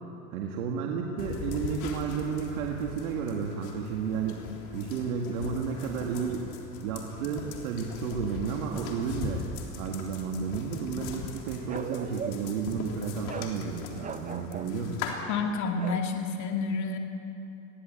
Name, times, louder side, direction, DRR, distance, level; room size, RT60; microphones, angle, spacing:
voice 1, 0.3-4.5 4.7-6.5 6.8-9.5 9.8-15.0, right 6 dB, 85° right, 0 dB, 2.0 m, -32 dB
sound 1, 1.2-15.1, left 4 dB, 65° left, 3.6 m, -40 dB
Bark, 11.7-12.6 13.3-13.5 14.0-14.8 15.8-16.1, right 6 dB, 20° right, 0.8 m, -38 dB
voice 2, 15.3-17.0, left 4 dB, 40° left, 3 dB, 2.4 m, -29 dB
21.5 x 16.5 x 8.8 m, 2.9 s
supercardioid pair, 110°, 42 cm